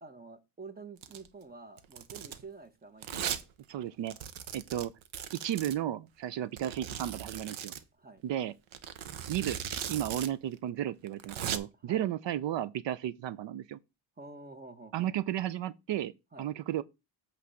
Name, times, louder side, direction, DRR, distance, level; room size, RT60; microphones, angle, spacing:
voice 1, 0.0-3.3 7.9-8.2 11.8-12.1 14.2-15.1 16.3-16.5, right 4 dB, 20° right, 1.0 m, -48 dB
Domestic sounds home sounds, 1.0-1.3 1.8-2.4 3.0-3.4 3.7-3.8 4.1-5.8 6.6-7.8 8.7-10.3 10.5-10.6 11.1-11.6, right 9 dB, 85° right, 0.9 m, -38 dB
voice 2, 3.7-4.2 4.5-4.9 5.4-7.7 8.2-8.5 9.3-9.6 9.9-13.8 14.9-16.1 16.4-16.8, right 12 dB, 65° right, 0.6 m, -33 dB
8.3 x 3.4 x 6.3 m
cardioid pair, 125°, 46 cm